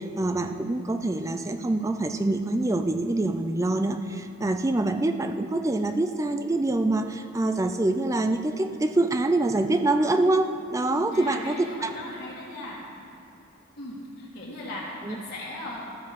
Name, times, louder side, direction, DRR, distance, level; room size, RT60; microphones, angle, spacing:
voice 1, 0.0-11.6 11.8-11.9 15.0-15.2, right 2 dB, 15° right, 8 dB, 0.3 m, -25 dB
voice 2, 10.8-12.8 13.8-15.8, left 1 dB, 50° left, -8 dB, 1.6 m, -38 dB
14.0 x 5.1 x 5.2 m, 2.8 s
head